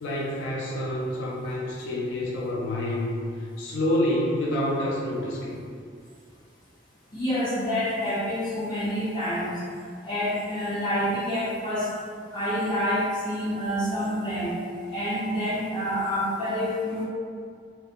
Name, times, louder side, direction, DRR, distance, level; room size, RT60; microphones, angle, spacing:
voice 1, 0.0-5.6, left 1 dB, 85° left, -4 dB, 0.4 m, -28 dB
voice 2, 7.1-9.5 10.0-11.9 12.3-14.6 14.9-17.0, equal, 25° left, -11 dB, 0.8 m, -27 dB
2.4 x 2.1 x 2.7 m, 2.2 s
head